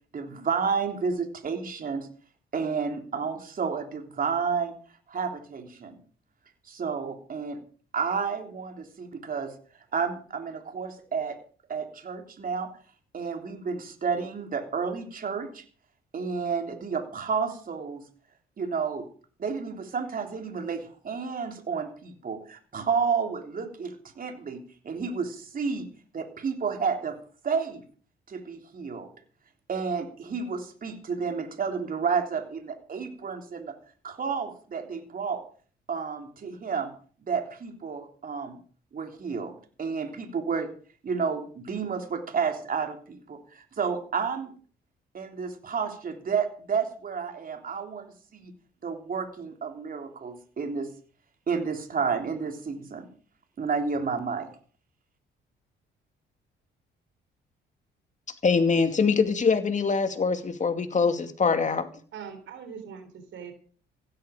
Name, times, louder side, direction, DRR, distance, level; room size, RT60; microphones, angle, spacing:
voice 1, 0.1-2.1 2.5-4.7 5.1-5.9 6.7-7.6 7.9-9.5 9.9-11.4 11.7-12.7 13.1-15.6 16.1-18.0 18.6-19.1 19.4-25.9 26.1-27.2 27.4-27.8 28.3-29.1 29.7-33.8 34.0-35.4 35.9-36.9 37.3-38.6 38.9-39.5 39.8-40.7 41.0-44.5 45.1-48.5 48.8-50.9 51.5-53.0 53.6-54.5, right 5 dB, 45° right, 5 dB, 3.4 m, -31 dB
voice 2, 58.4-61.9, left 5 dB, 40° left, 8 dB, 2.4 m, -23 dB
voice 3, 62.1-63.5, right 7 dB, 70° right, 8 dB, 3.7 m, -41 dB
16.0 x 13.0 x 5.1 m, 0.43 s
cardioid pair, 90°, 20 cm